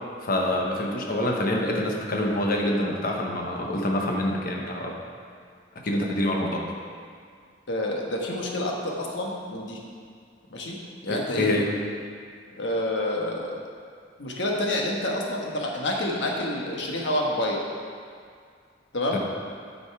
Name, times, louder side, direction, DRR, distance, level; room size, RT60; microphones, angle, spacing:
voice 1, 0.2-5.0 5.8-6.6 11.1-11.7 19.1-19.2, left 1 dB, 50° left, 0 dB, 1.1 m, -26 dB
voice 2, 7.7-9.8 10.5-10.8 11.0-11.5 12.6-13.6 14.2-17.6 18.9-19.2, left 1 dB, 65° left, -1 dB, 1.3 m, -28 dB
9.8 x 5.4 x 4.7 m, 2.2 s
head